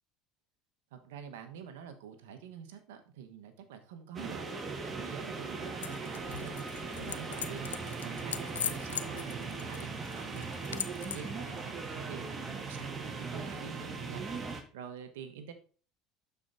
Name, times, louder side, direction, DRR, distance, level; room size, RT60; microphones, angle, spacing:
voice 1, 0.9-4.5 4.8-10.5 11.0-14.4 14.7-15.5, right 8 dB, 75° right, 7 dB, 1.1 m, -47 dB
sound 1, 4.2-14.6, right 4 dB, 30° right, 1.5 m, -39 dB
sound 2, 5.8-11.3, left 9 dB, 85° left, 0.4 m, -41 dB
12.5 x 4.6 x 2.6 m, 0.39 s
hypercardioid pair, 70°, 0 cm